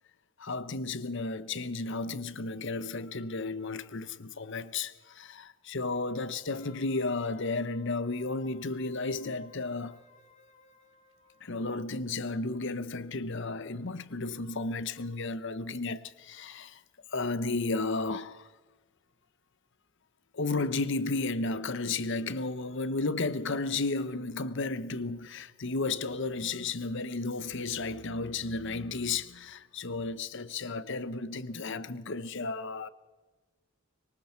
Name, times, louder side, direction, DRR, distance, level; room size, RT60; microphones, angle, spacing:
voice 1, 0.4-10.0 11.4-16.8 17.1-18.5 20.3-32.9, left 3 dB, 55° left, 0.9 m, -33 dB
Wind instrument woodwind instrument, 6.5-12.0 12.4-12.5, left 4 dB, 35° left, 2.7 m, -61 dB
25.0 x 23.0 x 4.5 m
head